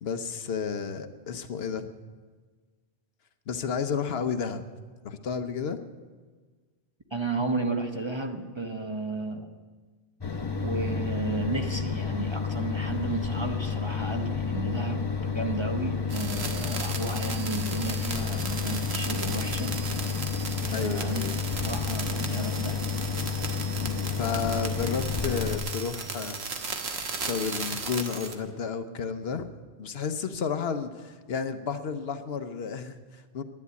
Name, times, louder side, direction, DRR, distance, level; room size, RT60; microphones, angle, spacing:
voice 1, 0.0-1.9 3.5-4.6 5.0-5.8 20.7-21.4 23.8-26.4 27.3-29.5 29.8-33.4, left 6 dB, 70° left, 9 dB, 1.0 m, -32 dB
voice 2, 7.1-9.5 10.6-19.8 20.6-21.2 21.6-22.9, right 3 dB, 30° right, 4 dB, 0.8 m, -33 dB
sound 1, 10.2-25.6, left 6 dB, 25° left, 0.8 m, -30 dB
sound 2, 16.1-28.3, right 4 dB, 75° right, 1.4 m, -36 dB
11.0 x 10.5 x 8.2 m, 1.4 s
omnidirectional pair, 1.1 m